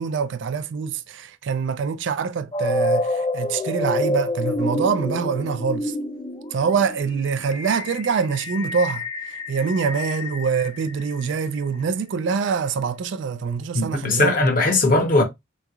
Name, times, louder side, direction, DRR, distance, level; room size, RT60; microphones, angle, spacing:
voice 1, 0.0-5.9 6.5-14.4, right 5 dB, 60° right, 0.3 m, -25 dB
sound 1, 2.5-11.5, left 1 dB, 25° left, 0.4 m, -28 dB
voice 2, 13.7-15.2, left 2 dB, 45° left, 0.8 m, -19 dB
3.5 x 3.0 x 2.3 m
head